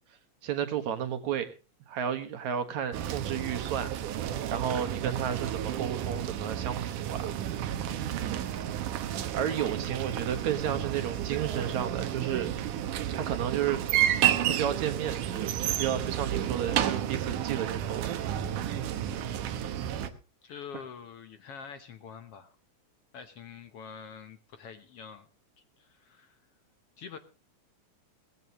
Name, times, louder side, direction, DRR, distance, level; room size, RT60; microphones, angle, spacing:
voice 1, 0.4-1.5 1.9-4.0 4.5-7.3 8.2-8.5 9.3-12.5 13.2-13.8 14.5-18.1, right 9 dB, 70° right, 9 dB, 2.7 m, -32 dB
sound 1, 2.9-20.1, right 11 dB, 85° right, 2.6 m, -31 dB
voice 2, 19.0-19.5 20.4-22.6 23.1-25.3 25.8-26.4 27.0-27.2, left 6 dB, 65° left, 9 dB, 1.7 m, -46 dB
18.5 x 15.5 x 3.0 m, 0.32 s
omnidirectional pair, 3.5 m